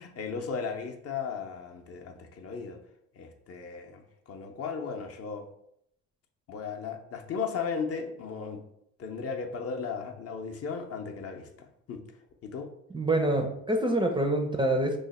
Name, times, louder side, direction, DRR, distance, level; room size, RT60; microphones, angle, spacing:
voice 1, 0.0-2.8 3.1-5.5 6.5-8.6 9.0-12.0 12.4-12.7, left 5 dB, 50° left, 4 dB, 0.6 m, -36 dB
voice 2, 12.9-15.0, right 1 dB, 15° right, 3 dB, 0.4 m, -26 dB
3.1 x 2.1 x 4.0 m, 0.74 s
cardioid pair, 90°, 30 cm